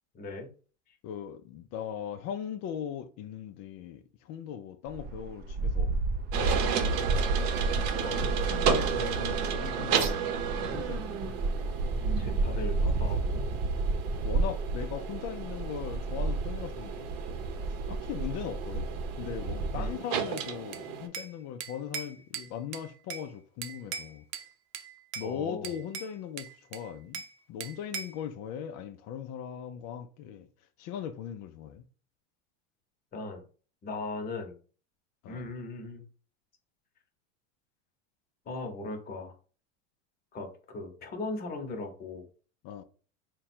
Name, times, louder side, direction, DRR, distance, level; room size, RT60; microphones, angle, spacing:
voice 1, 0.1-0.5 0.9-1.0 8.0-8.3 12.2-13.4 19.7-20.0 25.2-25.8 33.1-33.4 33.8-34.5 35.3-36.0 38.5-39.3 40.3-42.3, left 3 dB, 25° left, 0.9 m, -38 dB
voice 2, 1.0-4.0 4.3-5.9 6.3-7.1 7.9-11.3 12.8-12.9 13.2-13.4 14.2-17.1 17.9-18.8 19.2-24.2 25.2-27.2 27.5-30.5 30.8-31.8 35.2-35.4 42.6-42.8, left 9 dB, 45° left, 0.4 m, -39 dB
sound 1, 4.9-19.9, right 3 dB, 25° right, 0.4 m, -31 dB
sound 2, 6.3-21.1, right 7 dB, 45° right, 0.8 m, -34 dB
Bell / Glass, 20.4-21.3 21.6-23.3 23.6-24.5 24.7-25.3 25.6-27.3 27.6-28.2, right 7 dB, 80° right, 0.7 m, -40 dB
3.6 x 2.2 x 4.3 m
supercardioid pair, 115°, 38 cm